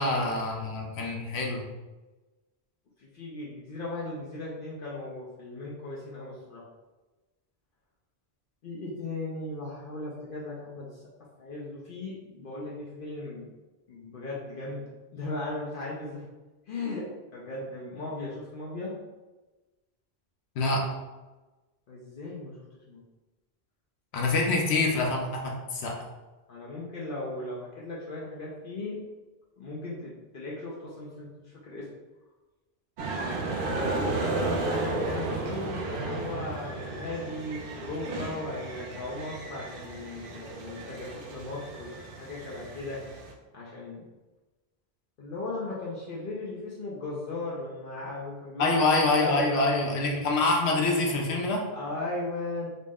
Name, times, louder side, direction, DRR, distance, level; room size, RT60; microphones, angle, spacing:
voice 1, 0.0-1.6 20.6-20.8 24.1-25.9 48.6-51.6, left 2 dB, 85° left, 0 dB, 1.0 m, -26 dB
voice 2, 3.0-6.6 8.6-11.0 11.4-13.5 13.9-14.8 15.1-16.3 16.7-17.1 17.3-18.9 21.9-22.6 22.9-23.0 24.3-24.5 26.5-29.0 29.6-31.3 31.6-31.9 33.8-43.0 43.5-44.0 45.2-50.2 51.7-52.7, left 2 dB, 60° left, -6 dB, 0.8 m, -37 dB
sound 1, 33.0-43.3, right 2 dB, 60° right, 0.7 m, -34 dB
3.9 x 2.0 x 3.5 m, 1.2 s
omnidirectional pair, 1.1 m